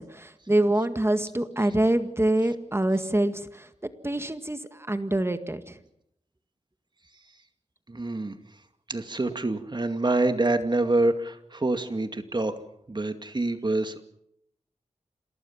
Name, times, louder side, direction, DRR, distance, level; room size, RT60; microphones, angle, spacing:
voice 1, 0.0-3.7 4.0-5.8, right 1 dB, 20° right, 9 dB, 1.9 m, -25 dB
voice 2, 7.9-8.3 8.9-12.5 12.9-14.0, right 2 dB, 40° right, 8 dB, 2.3 m, -26 dB
27.5 x 19.0 x 7.4 m, 0.76 s
cardioid pair, 50°, 12 cm